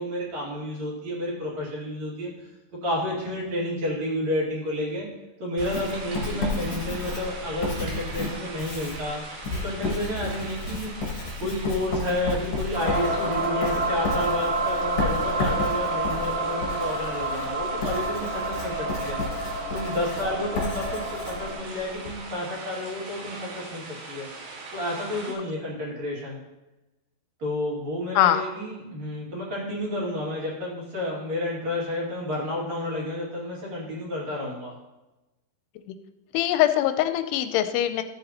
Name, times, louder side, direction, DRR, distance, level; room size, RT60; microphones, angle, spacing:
voice 1, 0.0-2.5 2.8-5.1 5.4-9.3 9.5-10.9 11.4-19.2 19.7-24.3 24.7-26.4 27.4-34.8, left 1 dB, 45° right, -5 dB, 3.2 m, -30 dB
Writing, 5.6-22.2, left 3 dB, 50° left, 2.0 m, -33 dB
sound 1, 5.6-25.3, right 3 dB, 90° right, 3.9 m, -41 dB
sound 2, 12.7-21.5, right 2 dB, 5° right, 2.8 m, -29 dB
voice 2, 36.3-38.0, left 12 dB, 85° left, 10 dB, 2.5 m, -22 dB
13.5 x 7.9 x 2.9 m, 1.0 s
omnidirectional pair, 4.8 m